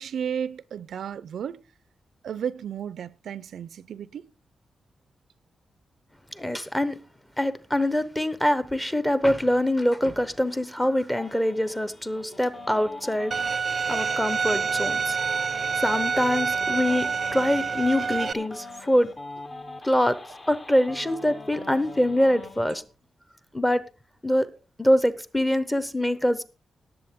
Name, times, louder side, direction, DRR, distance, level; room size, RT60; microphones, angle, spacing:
voice 1, 0.0-1.6 2.2-4.3 13.7-13.9, right 8 dB, 90° right, 0.5 m, -33 dB
voice 2, 6.4-7.0 7.4-13.3 13.9-15.5 15.8-17.1 17.3-19.1 19.8-20.2 20.5-22.8 23.5-23.8 24.2-24.5 24.8-26.4, left 1 dB, 5° left, 0.8 m, -24 dB
sound 1, 11.2-22.8, left 2 dB, 30° left, 1.3 m, -42 dB
Bowed string instrument, 13.3-18.3, right 5 dB, 40° right, 0.5 m, -27 dB
18.0 x 7.4 x 3.6 m
wide cardioid pair, 155°, 0 cm